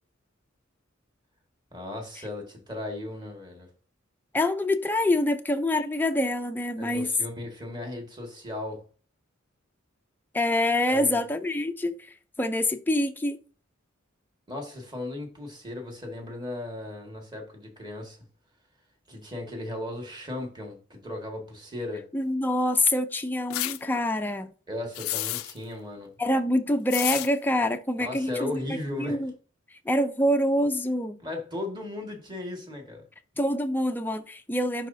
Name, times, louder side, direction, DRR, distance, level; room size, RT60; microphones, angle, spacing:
voice 1, 1.7-3.7 6.8-8.9 10.9-11.2 14.5-18.2 19.1-22.1 24.7-26.1 28.0-29.2 31.2-33.0, left 1 dB, 20° right, 1.8 m, -36 dB
voice 2, 4.3-7.1 10.3-12.0 12.4-13.4 22.1-24.5 26.2-28.6 29.0-29.3 29.9-31.2 33.4-34.9, left 1 dB, 10° left, 0.5 m, -25 dB
sound 1, 23.5-23.8 24.9-25.6 26.9-27.3, left 16 dB, 85° left, 0.4 m, -30 dB
11.0 x 4.1 x 2.7 m
head